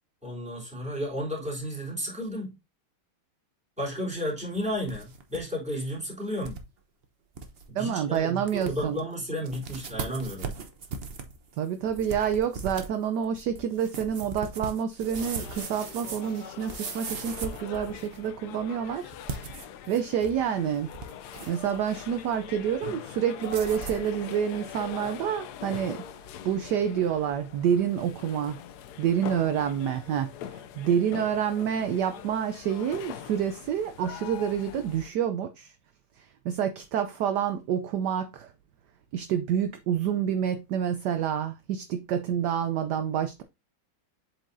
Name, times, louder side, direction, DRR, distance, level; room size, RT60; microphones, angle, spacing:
voice 1, 0.2-2.6 3.8-6.6 7.7-10.5, equal, 5° right, 3.0 m, -33 dB
sound 1, 4.6-5.4 5.7-5.8 6.4-6.6 7.0-7.1 7.3-7.6 8.1-8.2 8.5-9.0 9.4-18.3 19.1-20.4 20.7-21.7 23.4-24.1, right 5 dB, 50° right, 0.7 m, -39 dB
voice 2, 7.7-9.0 11.6-19.5 19.9-20.9 21.5-26.0 26.4-28.6 29.0-35.7 36.2-38.5 39.1-43.4, right 8 dB, 70° right, 1.0 m, -28 dB
sound 2, 15.2-35.1, left 9 dB, 75° left, 0.9 m, -43 dB
7.7 x 4.8 x 2.6 m
omnidirectional pair, 2.3 m